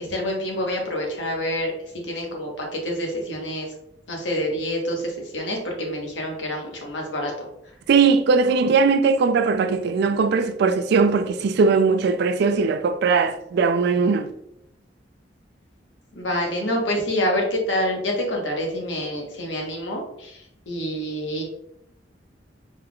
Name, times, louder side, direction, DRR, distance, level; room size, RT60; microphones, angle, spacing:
voice 1, 0.0-1.7 2.1-3.7 4.1-7.3 16.1-20.4 20.7-21.4, equal, 80° left, 1.1 m, -27 dB
voice 2, 7.9-14.3, right 4 dB, 65° right, 0.3 m, -19 dB
4.4 x 3.5 x 2.3 m
head